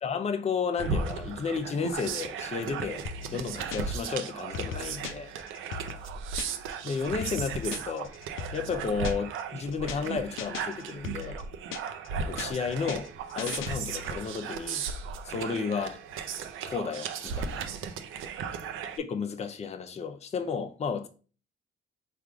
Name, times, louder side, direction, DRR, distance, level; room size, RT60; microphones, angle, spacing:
voice 1, 0.0-3.0 3.3-5.3 6.8-8.1 8.5-11.4 12.2-14.8 15.2-16.0 16.6-17.7 19.0-21.1, left 5 dB, 35° left, 0.5 m, -32 dB
sound 1, 0.8-19.0, right 6 dB, 85° right, 0.5 m, -36 dB
sound 2, 3.0-4.1 4.4-6.7 7.0-9.4 9.7-10.1 10.4-12.1 12.4-14.2, left 7 dB, 85° left, 0.5 m, -39 dB
3.5 x 2.5 x 4.6 m
cardioid pair, 90°, 20 cm